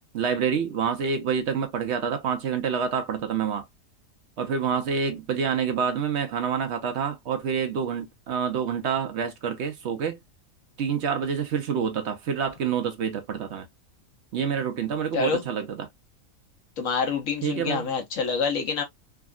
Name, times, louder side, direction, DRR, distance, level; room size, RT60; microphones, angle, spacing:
voice 1, 0.1-3.6 4.4-10.2 10.8-13.7 14.3-15.9 17.4-17.9, right 6 dB, 60° right, 0.8 m, -27 dB
voice 2, 16.8-18.8, left 5 dB, 75° left, 1.3 m, -26 dB
3.5 x 2.2 x 2.2 m
omnidirectional pair, 1.4 m